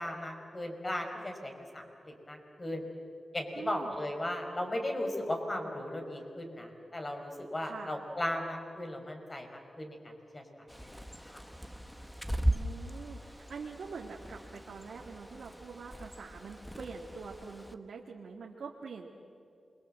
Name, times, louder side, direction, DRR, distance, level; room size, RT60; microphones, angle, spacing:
voice 1, 0.0-2.8 3.3-10.0 10.3-10.4 10.8-10.9 11.3-11.4, left 1 dB, 30° left, 4 dB, 5.3 m, -37 dB
voice 2, 3.5-3.9 7.6-7.9 12.4-19.1, right 5 dB, 85° right, -1 dB, 2.2 m, -45 dB
Bird, 10.7-17.7, right 1 dB, 5° left, 1.4 m, -38 dB
28.5 x 23.5 x 7.8 m, 2.7 s
cardioid pair, 75°, 0 cm